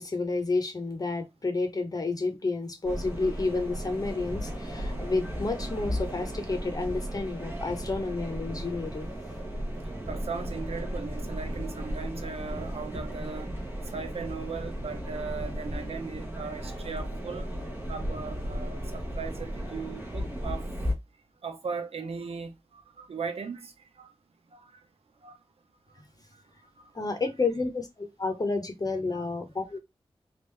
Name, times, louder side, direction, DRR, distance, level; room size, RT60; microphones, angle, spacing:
voice 1, 0.0-9.1 26.9-29.8, left 3 dB, 40° left, 1.0 m, -30 dB
sound 1, 2.8-20.9, equal, 20° right, 1.1 m, -35 dB
voice 2, 10.1-13.5 13.9-17.5 17.9-20.7 21.4-23.7 24.0-24.1 24.5-24.6 25.2-25.4 29.1-29.2, right 5 dB, 85° right, 0.8 m, -38 dB
3.6 x 2.6 x 3.2 m
wide cardioid pair, 120°, 10 cm